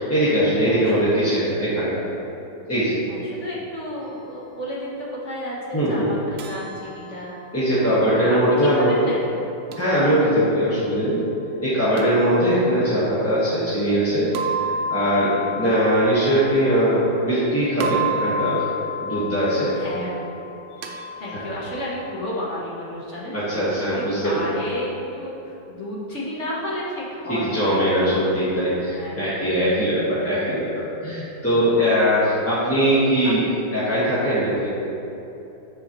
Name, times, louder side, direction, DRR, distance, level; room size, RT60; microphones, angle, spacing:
voice 1, 0.0-2.0 2.7-3.0 5.7-6.1 7.5-9.1 9.8-11.2 11.6-14.3 14.6-18.6 19.0-19.7 20.9-21.0 21.4-21.5 23.3-24.4 27.3-33.4 33.7-34.7, equal, 10° left, -11 dB, 1.0 m, -21 dB
voice 2, 3.1-5.0 5.2-7.3 8.1-9.4 12.5-12.6 15.3-15.6 19.7-20.3 20.8-20.9 21.2-23.6 23.9-27.8 28.9-29.4 32.2-32.4 33.4-33.5, left 1 dB, 40° left, -6 dB, 1.3 m, -32 dB
sound 1, 6.4-8.5 9.7-10.7 12.0-13.2 14.3-17.4 17.8-22.2, equal, 70° right, 1.1 m, -32 dB
7.8 x 7.1 x 3.0 m, 2.9 s
omnidirectional pair, 2.1 m